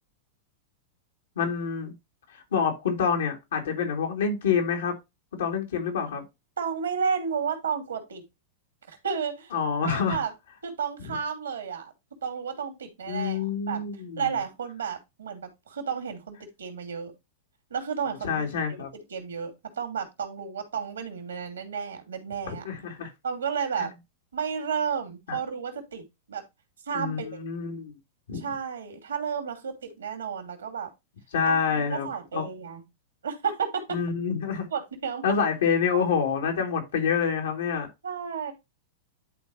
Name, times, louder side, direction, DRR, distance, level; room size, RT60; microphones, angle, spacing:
voice 1, 1.4-1.9 2.5-5.0 5.4-6.2 9.5-10.2 13.1-14.4 18.2-18.9 22.5-23.1 23.8-23.9 25.3-25.4 26.9-28.0 28.3-28.5 31.3-32.1 32.3-32.5 33.9-34.7 35.2-37.9, left 6 dB, 70° left, 2.6 m, -27 dB
voice 2, 6.6-8.2 8.9-9.5 9.8-10.3 10.6-11.9 12.2-13.8 14.2-17.1 17.7-18.5 18.9-22.7 23.2-23.9 24.3-26.4 26.9-27.4 28.3-30.9 31.4-32.8 33.2-34.0 34.7-35.3 35.9-36.0 38.0-38.5, right 6 dB, 75° right, 2.7 m, -32 dB
11.0 x 4.4 x 2.9 m
figure-of-eight pair, 95°, 0 cm